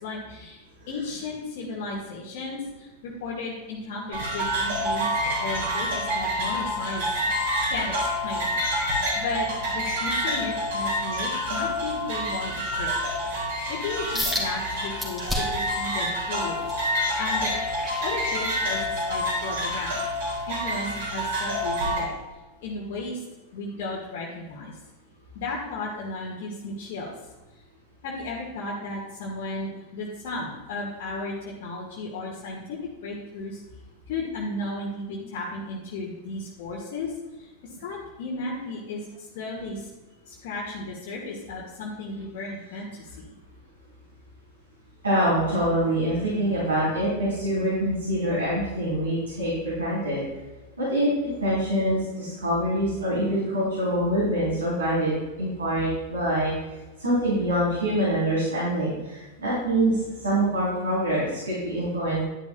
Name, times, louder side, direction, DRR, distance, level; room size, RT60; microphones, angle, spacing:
voice 1, 0.0-0.6 0.9-7.2 7.7-7.9 8.2-8.6 9.1-9.5 9.7-13.2 13.7-16.6 17.1-17.5 18.0-20.0 20.5-22.2 22.6-23.2 23.5-24.7 25.3-27.1 28.0-33.6 34.1-37.1 37.4-37.5 37.8-39.0 39.3-39.9 40.3-43.3, left 3 dB, 50° left, -4 dB, 1.6 m, -34 dB
sound 1, 4.1-22.0, equal, 55° right, 3.4 m, -28 dB
can opening & drinking, 14.1-14.5 15.0-15.7 16.2-18.7 19.2-19.5 20.0-20.1, left 1 dB, 5° right, 2.8 m, -32 dB
voice 2, 45.0-50.2 50.8-56.5 57.0-62.2, right 1 dB, 75° right, -8 dB, 3.5 m, -25 dB
11.0 x 11.0 x 2.3 m, 1.1 s
figure-of-eight pair, 90°, 0 cm